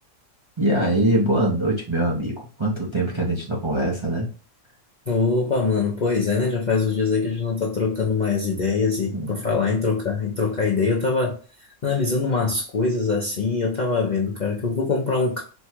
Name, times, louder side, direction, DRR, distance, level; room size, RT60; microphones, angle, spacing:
voice 1, 0.6-4.3 9.1-9.5, right 1 dB, 25° right, 0.7 m, -23 dB
voice 2, 5.1-15.4, left 4 dB, 45° left, 0.6 m, -23 dB
4.3 x 2.3 x 4.4 m
omnidirectional pair, 1.5 m